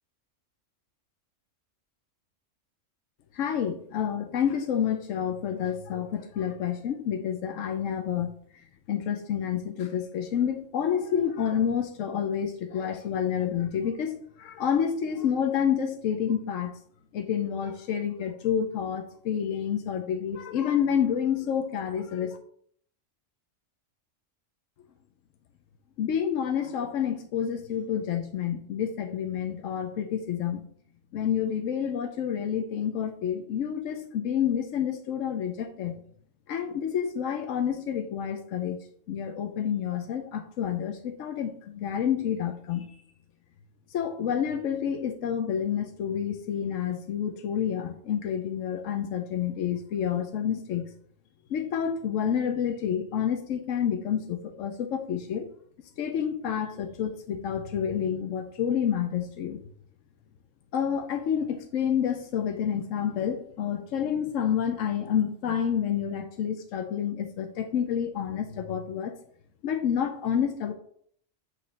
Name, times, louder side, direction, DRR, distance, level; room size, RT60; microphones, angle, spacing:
voice 1, 3.3-16.7 17.1-22.4 26.0-30.6 31.1-36.0 36.5-42.9 43.9-50.9 51.5-55.4 56.0-59.6 60.7-69.1 69.6-70.7, left 8 dB, 80° left, 5 dB, 1.0 m, -29 dB
8.3 x 3.3 x 5.3 m, 0.62 s
omnidirectional pair, 1.3 m